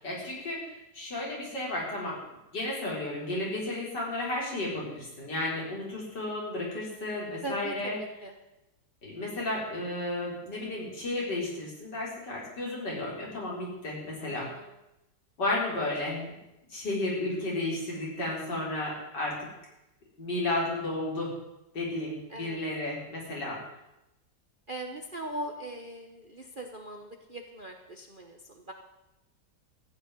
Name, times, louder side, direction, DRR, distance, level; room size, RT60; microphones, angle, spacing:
voice 1, 0.0-0.6 0.9-2.2 2.5-8.0 9.0-14.5 15.4-16.3 16.7-19.4 20.2-21.3 21.7-23.6, left 2 dB, 65° left, -4 dB, 4.8 m, -33 dB
voice 2, 7.4-8.3 14.2-14.7 15.8-15.9 22.3-22.6 24.7-28.7, right 1 dB, 35° right, 3 dB, 1.0 m, -40 dB
14.0 x 6.3 x 9.7 m, 0.91 s
omnidirectional pair, 2.0 m